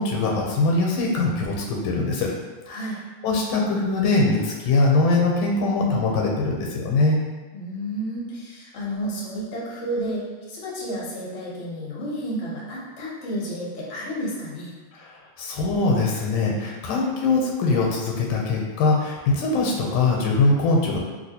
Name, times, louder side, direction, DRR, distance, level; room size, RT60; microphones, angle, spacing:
voice 1, 0.0-2.3 3.2-7.2 14.9-21.0, left 3 dB, 85° left, -1 dB, 1.4 m, -22 dB
voice 2, 2.7-3.0 7.5-10.2 10.5-14.7, equal, 50° left, -6 dB, 0.9 m, -31 dB
3.2 x 2.8 x 2.7 m, 1.3 s
omnidirectional pair, 2.3 m